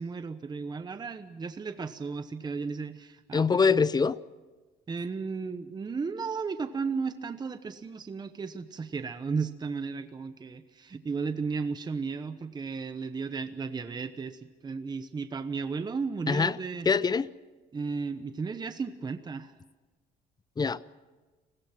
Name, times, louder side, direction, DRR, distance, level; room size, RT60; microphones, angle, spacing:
voice 1, 0.0-3.6 4.9-16.9 17.7-19.5, right 5 dB, 25° right, 1.0 m, -34 dB
voice 2, 3.3-4.2 16.3-16.6 16.8-17.3 20.6-21.0, left 5 dB, 25° left, 0.6 m, -24 dB
30.0 x 20.5 x 6.0 m
cardioid pair, 110°, 17 cm